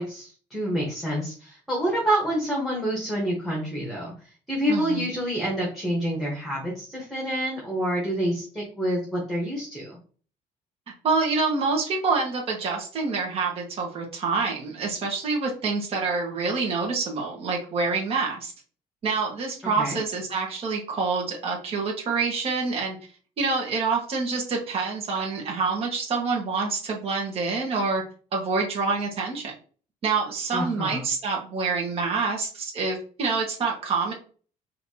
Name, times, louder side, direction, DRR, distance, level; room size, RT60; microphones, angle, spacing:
voice 1, 0.0-4.1 4.5-10.0 19.8-20.0 30.5-31.0, equal, ahead, -3 dB, 1.2 m, -27 dB
voice 2, 4.7-5.1 11.0-18.5 19.0-23.0 23.4-28.0 28.3-29.5 30.0-34.1, right 4 dB, 40° right, -1 dB, 1.3 m, -27 dB
5.5 x 2.8 x 2.8 m, 0.40 s
cardioid pair, 170°, 15 cm